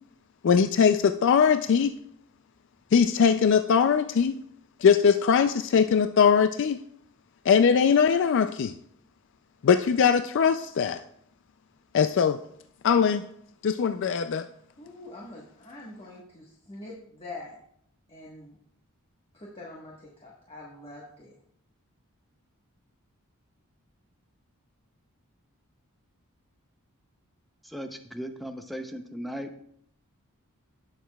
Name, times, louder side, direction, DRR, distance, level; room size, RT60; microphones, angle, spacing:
voice 1, 0.4-2.0 2.9-4.3 4.8-6.8 7.5-8.7 9.6-11.0 11.9-12.4 12.8-13.2 13.6-14.5, left 6 dB, 55° left, 9 dB, 0.3 m, -21 dB
voice 2, 14.8-17.6 18.1-18.6 19.3-21.3, left 2 dB, 25° left, -3 dB, 1.2 m, -44 dB
voice 3, 27.6-29.6, equal, ahead, 6 dB, 0.6 m, -37 dB
17.5 x 6.5 x 2.3 m, 0.68 s
head